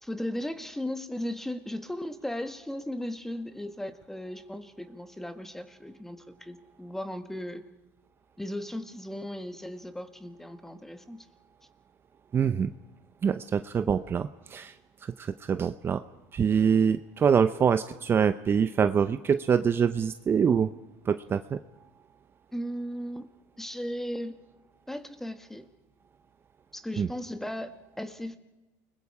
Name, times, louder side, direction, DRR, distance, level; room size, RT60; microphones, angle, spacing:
voice 1, 0.0-7.6 8.4-11.3 22.5-23.3 23.6-24.4 24.9-25.7 26.7-28.4, left 1 dB, 5° left, 9 dB, 1.7 m, -36 dB
voice 2, 12.3-12.7 13.2-14.8 15.0-16.0 16.3-20.7 21.0-21.6 27.0-27.1, right 7 dB, 30° right, 11 dB, 0.7 m, -25 dB
29.0 x 21.0 x 4.9 m, 1.1 s
supercardioid pair, 120°, 8 cm